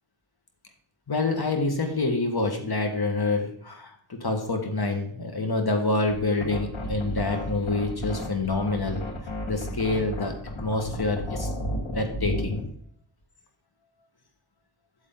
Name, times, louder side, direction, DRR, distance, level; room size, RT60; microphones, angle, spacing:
voice 1, 1.1-9.0 9.5-11.5 11.9-12.6, left 2 dB, 55° left, 4 dB, 1.6 m, -27 dB
sound 1, 6.1-12.7, left 1 dB, 90° left, 1.5 m, -33 dB
8.5 x 7.3 x 3.8 m, 0.63 s
wide cardioid pair, 70°, 46 cm